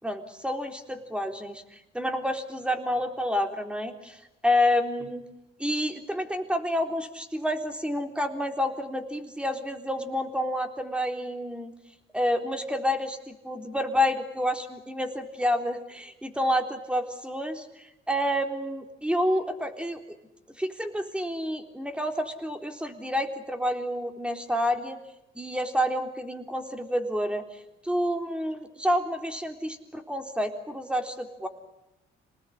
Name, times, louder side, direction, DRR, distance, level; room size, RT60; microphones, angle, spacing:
voice 1, 0.0-5.2 5.6-11.7 12.1-20.0 20.6-25.0 25.3-31.5, equal, 5° right, 5 dB, 3.7 m, -29 dB
27.5 x 19.5 x 9.9 m, 0.94 s
cardioid pair, 90°, 20 cm